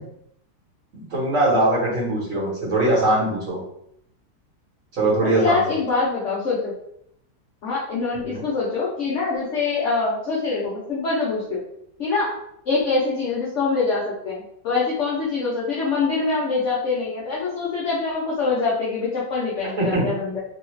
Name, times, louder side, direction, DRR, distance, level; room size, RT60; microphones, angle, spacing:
voice 1, 1.1-3.6 4.9-5.6 8.2-8.4 19.8-20.0, right 2 dB, 45° right, -6 dB, 1.3 m, -21 dB
voice 2, 5.2-6.7 7.6-11.6 12.0-12.3 12.7-20.4, left 4 dB, 65° left, -8 dB, 0.7 m, -24 dB
3.1 x 2.3 x 3.1 m, 0.73 s
omnidirectional pair, 2.1 m